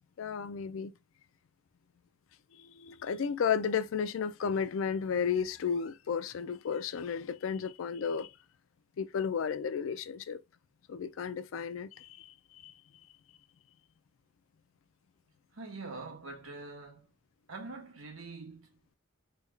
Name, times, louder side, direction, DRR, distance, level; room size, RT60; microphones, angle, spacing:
voice 1, 0.2-0.9 2.5-8.3 9.0-10.4 10.9-12.7, left 6 dB, 70° left, 0.4 m, -33 dB
voice 2, 15.5-17.1 17.5-18.7, right 3 dB, 85° right, 1.2 m, -44 dB
3.3 x 2.2 x 3.2 m
head